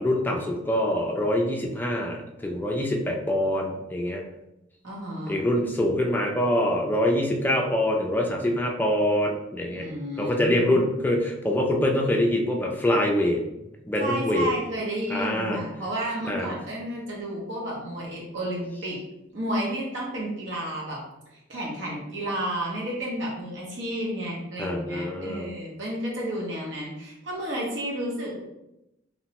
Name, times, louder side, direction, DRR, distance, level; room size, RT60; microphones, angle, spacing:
voice 1, 0.0-4.2 5.3-9.9 10.2-13.4 13.9-14.5 15.1-15.6 16.3-16.6 24.6-25.5, left 1 dB, 10° left, 0 dB, 0.3 m, -25 dB
voice 2, 4.8-5.4 9.7-10.8 14.0-19.0 19.3-21.0 21.5-28.4, right 1 dB, 70° right, -4 dB, 0.7 m, -31 dB
2.9 x 2.1 x 2.8 m, 0.90 s
head